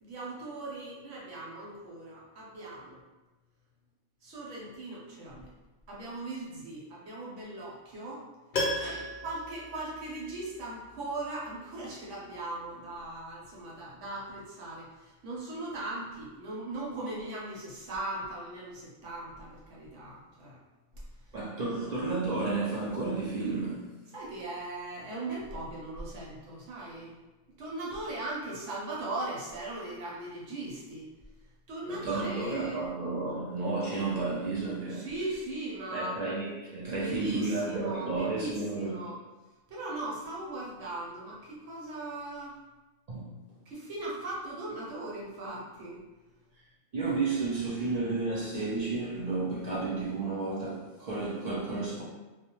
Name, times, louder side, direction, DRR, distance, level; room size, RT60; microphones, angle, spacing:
voice 1, 0.0-3.0 4.2-5.5 5.9-8.2 8.8-20.6 24.1-27.2 27.6-31.1 31.7-32.8 34.9-36.1 37.0-39.2 39.7-42.6 43.7-46.0, right 2 dB, 80° right, -5 dB, 1.1 m, -39 dB
Piano, 8.5-10.6 10.9-11.0, left 1 dB, 60° left, 0.6 m, -34 dB
voice 2, 21.3-23.9 31.9-35.1 35.9-39.0 43.1-43.4 46.9-52.0, right 3 dB, 65° right, -6 dB, 0.4 m, -32 dB
2.4 x 2.1 x 2.9 m, 1.1 s
omnidirectional pair, 1.3 m